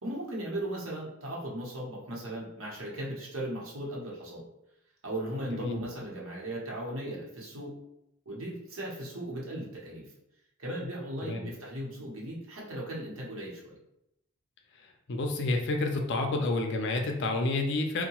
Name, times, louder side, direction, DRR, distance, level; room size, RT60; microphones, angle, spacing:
voice 1, 0.0-4.4 5.0-7.7 8.3-10.1 10.6-13.8, right 1 dB, 70° right, -3 dB, 0.9 m, -37 dB
voice 2, 15.1-18.1, left 2 dB, 60° left, 3 dB, 0.5 m, -29 dB
2.7 x 2.1 x 2.9 m, 0.82 s
head